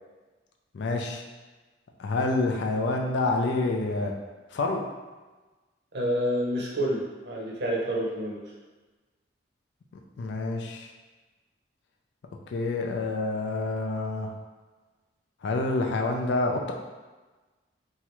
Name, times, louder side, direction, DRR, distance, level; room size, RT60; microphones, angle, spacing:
voice 1, 0.7-1.2 2.0-4.1 4.5-4.9 10.2-10.9 12.5-14.3 15.4-16.7, left 2 dB, 65° left, 1 dB, 0.4 m, -27 dB
voice 2, 5.9-8.5, equal, 60° right, -3 dB, 0.6 m, -28 dB
3.1 x 2.4 x 2.9 m, 1.3 s
head